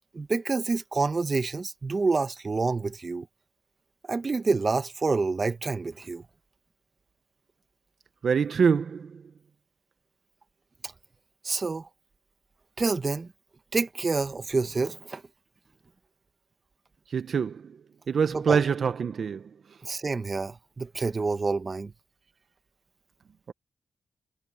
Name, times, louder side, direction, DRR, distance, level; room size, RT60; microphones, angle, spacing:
voice 1, 0.1-3.3 4.1-6.2 10.8-10.9 11.4-11.9 12.8-13.3 13.7-15.2 18.3-18.7 19.8-21.9, right 4 dB, 40° right, 1.3 m, -28 dB
voice 2, 8.2-9.2 17.1-17.8 18.1-19.5, right 6 dB, 65° right, 0.9 m, -25 dB
cardioid pair, 75°, 0 cm